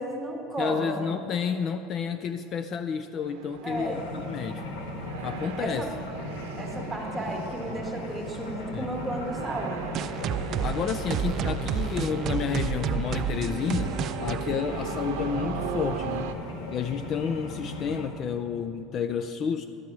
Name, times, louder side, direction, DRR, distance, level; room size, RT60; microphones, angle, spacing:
voice 1, 0.0-1.1 3.6-4.1 5.6-5.9 6.6-10.0, right 1 dB, 5° right, 1 dB, 1.5 m, -33 dB
voice 2, 0.6-4.6 5.2-5.8 8.7-8.9 10.6-16.3 16.7-19.7, left 7 dB, 40° left, 9 dB, 0.3 m, -30 dB
sound 1, 3.2-16.3, right 7 dB, 90° right, 0.7 m, -39 dB
sound 2, 3.7-18.1, left 2 dB, 85° left, 1.3 m, -38 dB
sound 3, 9.9-15.4, right 8 dB, 40° right, 0.3 m, -30 dB
12.0 x 4.6 x 8.4 m, 2.7 s
supercardioid pair, 135°, 0 cm